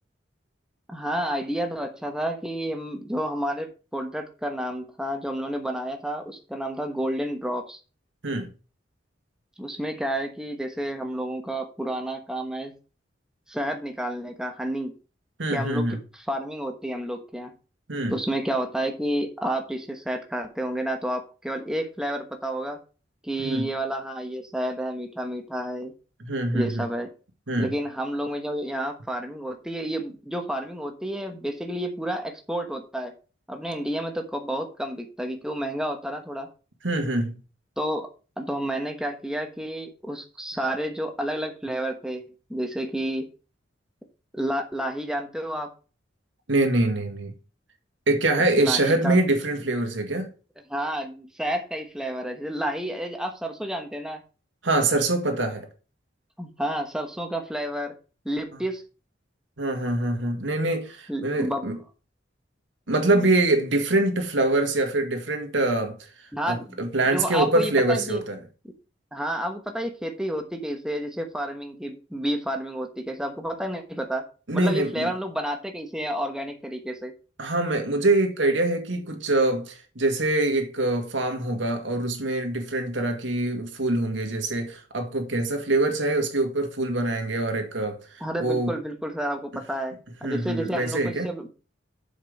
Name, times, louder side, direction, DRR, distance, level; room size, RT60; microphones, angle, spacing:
voice 1, 0.9-7.8 9.6-12.7 13.5-14.9 15.5-15.9 16.1-17.5 18.1-22.8 23.2-25.9 26.5-27.1 27.6-33.1 33.5-36.5 37.8-38.1 38.4-42.2 42.5-43.3 44.3-45.7 48.6-49.2 50.7-54.2 56.4-57.9 58.2-58.8 61.1-61.7 66.3-68.2 69.1-74.2 74.5-77.1 88.2-91.5, right 1 dB, 5° right, 1.1 m, -30 dB
voice 2, 15.4-16.0 17.9-18.2 23.4-23.7 26.2-26.9 27.5-27.7 36.8-37.4 46.5-47.3 48.1-50.3 54.6-55.7 59.6-61.8 62.9-66.1 66.5-68.4 74.5-75.1 77.4-88.7 90.2-91.3, right 2 dB, 90° right, 2.0 m, -24 dB
7.4 x 5.4 x 5.3 m
head